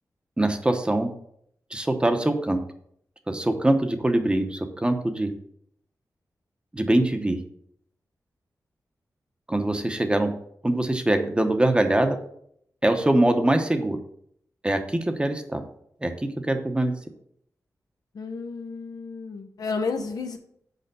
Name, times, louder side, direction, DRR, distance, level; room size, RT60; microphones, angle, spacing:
voice 1, 0.4-1.1 1.7-2.6 3.3-5.3 6.7-7.4 9.5-10.3 10.6-12.2 12.8-14.0 14.6-15.6 16.0-16.9, right 1 dB, 15° right, 6 dB, 0.9 m, -23 dB
voice 2, 18.1-20.4, left 4 dB, 85° left, 5 dB, 1.0 m, -31 dB
6.7 x 4.9 x 6.8 m, 0.70 s
wide cardioid pair, 110°, 6 cm